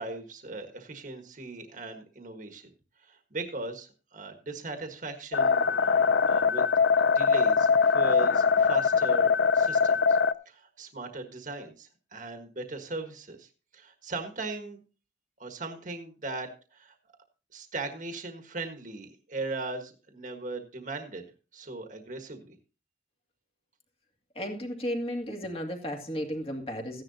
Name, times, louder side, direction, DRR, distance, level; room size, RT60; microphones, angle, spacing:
voice 1, 0.0-2.7 3.0-6.0 6.3-6.7 7.0-10.2 10.4-14.8 15.4-16.9 17.5-21.2 21.5-22.6, right 2 dB, 45° right, 5 dB, 1.5 m, -38 dB
sound 1, 5.3-10.3, left 5 dB, 70° left, 0.5 m, -22 dB
voice 2, 24.3-27.0, equal, 30° left, 3 dB, 2.4 m, -34 dB
15.0 x 10.5 x 2.8 m, 0.33 s
head